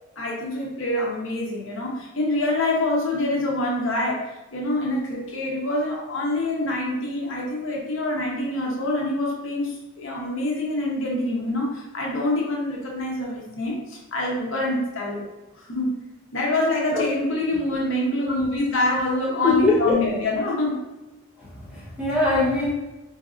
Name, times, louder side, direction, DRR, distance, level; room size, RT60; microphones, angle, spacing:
voice 1, 0.2-4.2 4.5-15.3 15.5-15.9 16.3-20.7, left 1 dB, 65° left, -1 dB, 0.7 m, -26 dB
voice 2, 18.2-18.6 19.4-20.1 21.7-22.7, left 3 dB, 5° right, -7 dB, 0.9 m, -22 dB
4.0 x 2.5 x 2.4 m, 1.1 s
head